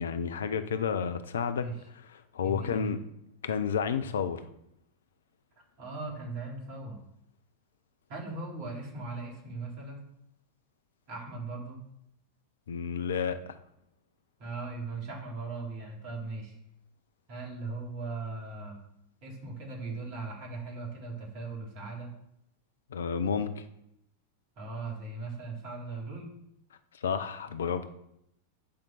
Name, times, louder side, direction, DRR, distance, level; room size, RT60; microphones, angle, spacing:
voice 1, 0.0-1.7 2.1-3.0 3.4-4.5 12.7-13.6 22.9-23.6 27.0-27.9, left 7 dB, 65° left, 11 dB, 0.7 m, -31 dB
voice 2, 2.4-2.9 5.8-7.1 8.1-10.0 11.1-11.8 14.4-16.6 17.3-18.8 19.2-22.1 24.6-26.3, right 3 dB, 40° right, -1 dB, 3.8 m, -39 dB
8.9 x 5.2 x 7.0 m, 0.79 s
figure-of-eight pair, 90°, 0 cm